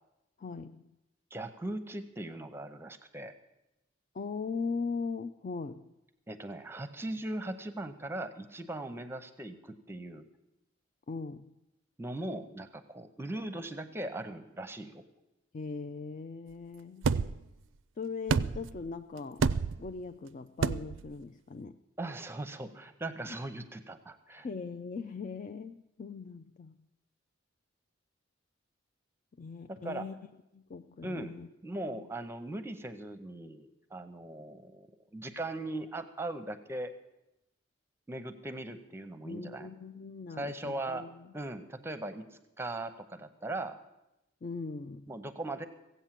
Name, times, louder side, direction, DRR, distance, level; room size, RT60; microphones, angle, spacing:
voice 1, 0.4-0.9 4.1-5.9 11.1-11.6 15.5-17.2 18.0-19.5 19.8-21.8 23.3-23.4 24.4-26.8 29.4-30.1 30.5-31.5 31.9-32.1 39.2-41.3 44.4-45.1, left 4 dB, 40° left, 9 dB, 0.4 m, -40 dB
voice 2, 1.3-3.3 6.3-10.3 12.0-15.0 22.0-24.5 29.7-30.1 31.0-34.9 35.1-36.9 38.1-39.7 40.4-41.1 41.3-43.8 45.1-45.7, right 1 dB, 15° right, 9 dB, 0.7 m, -39 dB
sound 1, 17.0-17.4 18.3-18.8 19.4-19.9 20.6-21.0, right 5 dB, 75° right, 0.4 m, -29 dB
16.0 x 8.2 x 7.4 m, 0.93 s
head